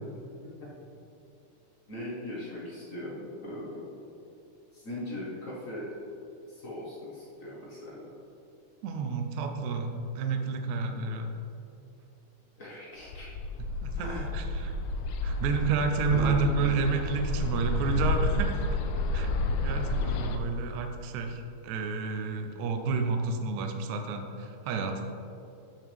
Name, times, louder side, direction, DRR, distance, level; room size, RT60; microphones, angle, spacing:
voice 1, 1.9-3.9 4.7-6.0 6.5-8.1 12.6-13.3 13.9-14.3 16.1-16.6, left 1 dB, 55° left, -6 dB, 0.9 m, -39 dB
voice 2, 8.8-11.3 13.6-14.7 15.2-18.5 19.1-19.3 19.6-25.0, right 4 dB, 75° right, 4 dB, 1.9 m, -30 dB
Bird, 13.1-20.4, left 2 dB, 80° left, 1.8 m, -30 dB
13.0 x 6.3 x 3.5 m, 2.7 s
omnidirectional pair, 3.8 m